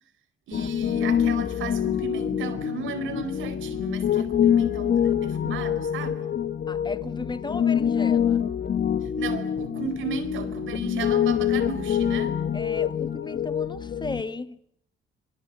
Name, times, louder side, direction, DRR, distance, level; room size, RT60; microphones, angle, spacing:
Piano, 0.5-14.2, left 9 dB, 55° left, 1.8 m, -25 dB
voice 1, 0.5-6.3 9.2-12.4, right 5 dB, 80° right, 4.6 m, -35 dB
voice 2, 6.7-8.5 12.5-14.6, left 3 dB, 20° left, 1.5 m, -35 dB
26.5 x 21.5 x 8.5 m
cardioid pair, 90°, 20 cm